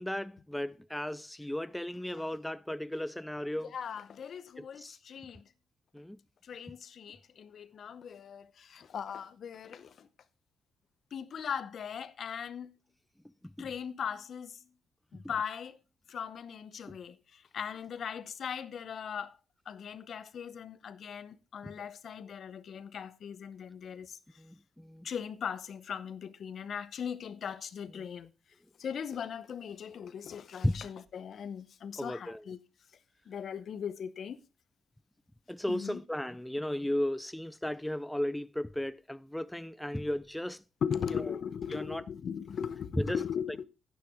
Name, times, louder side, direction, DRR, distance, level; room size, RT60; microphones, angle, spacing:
voice 1, 0.0-3.7 4.6-5.0 5.9-6.2 13.4-13.7 16.9-17.0 21.6-21.7 24.4-25.1 30.6-30.9 32.0-32.5 35.5-40.6 41.1-41.4 41.7-42.0 43.0-43.2, left 1 dB, 5° left, 0.4 m, -35 dB
voice 2, 3.7-5.4 6.4-10.1 11.1-12.7 13.6-14.6 15.1-15.8 16.1-19.4 19.7-24.2 25.0-28.3 28.8-32.6 33.3-34.4 35.7-36.0 40.8-43.6, left 7 dB, 60° left, 0.8 m, -39 dB
9.7 x 9.6 x 3.6 m
supercardioid pair, 55°, 0 cm